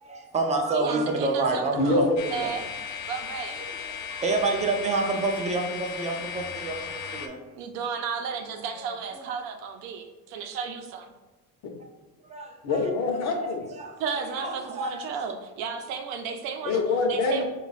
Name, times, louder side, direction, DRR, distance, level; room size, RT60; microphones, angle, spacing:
voice 1, 0.0-2.1 2.3-2.6 3.6-7.4 8.8-8.9 9.1-9.3 12.3-12.6 13.8-13.9 14.4-15.0, right 3 dB, 20° right, 1 dB, 0.4 m, -28 dB
voice 2, 0.7-2.0 2.3-2.7 3.1-3.6 7.6-11.1 14.0-16.8 17.1-17.4, right 6 dB, 85° right, 5 dB, 0.7 m, -34 dB
voice 3, 1.7-2.2 12.6-13.6 16.6-17.4, left 2 dB, 50° left, 3 dB, 0.7 m, -24 dB
sound 1, 2.2-7.3, left 7 dB, 85° left, 0.6 m, -36 dB
4.5 x 2.4 x 4.0 m, 1.2 s
cardioid pair, 170°, 35 cm